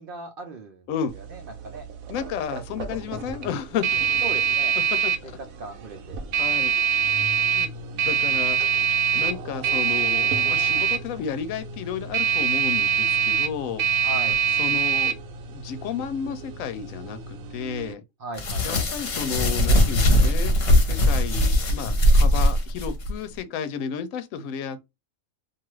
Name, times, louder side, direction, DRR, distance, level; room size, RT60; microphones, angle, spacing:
voice 1, 0.0-0.9 1.1-1.9 3.9-4.8 5.6-6.2 14.0-14.4 18.2-18.9, right 2 dB, 60° right, 0.6 m, -37 dB
sound 1, 1.1-17.9, right 7 dB, 80° right, 1.1 m, -25 dB
voice 2, 2.1-3.8 4.8-5.3 6.4-6.7 7.1-7.7 8.0-8.6 9.1-13.8 14.6-15.1 15.5-18.0 18.6-24.8, left 7 dB, 75° left, 1.0 m, -32 dB
sound 2, 18.4-23.1, left 1 dB, 50° left, 0.9 m, -20 dB
2.6 x 2.4 x 3.0 m
omnidirectional pair, 1.4 m